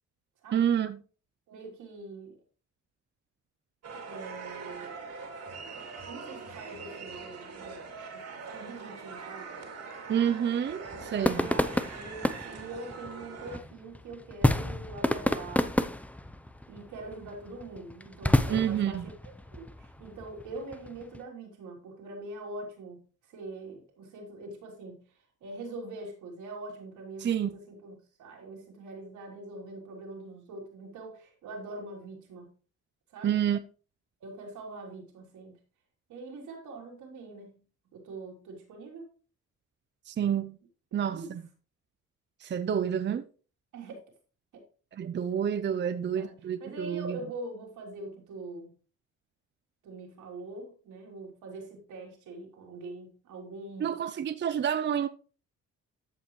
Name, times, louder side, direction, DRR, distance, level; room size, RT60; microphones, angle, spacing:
voice 1, 0.5-1.0 10.1-11.5 18.5-19.0 27.2-27.5 33.2-33.6 40.1-40.6 40.9-41.4 42.4-43.2 44.9-47.2 53.8-55.1, right 9 dB, 35° right, 0.6 m, -29 dB
voice 2, 1.5-2.4 4.1-5.0 6.1-7.8 8.1-9.5 11.3-15.7 16.7-19.1 19.5-23.0 23.3-25.0 25.4-32.5 33.1-33.3 34.2-35.6 36.1-37.6 37.9-39.1 41.1-41.3 43.7-44.0 44.5-44.6 45.8-48.7 49.8-53.9, right 2 dB, 80° right, 3.4 m, -43 dB
sound 1, 3.8-13.6, right 4 dB, 60° right, 2.7 m, -43 dB
sound 2, 10.8-21.2, left 1 dB, 5° left, 0.6 m, -31 dB
13.5 x 5.7 x 3.1 m
cardioid pair, 90°, 30 cm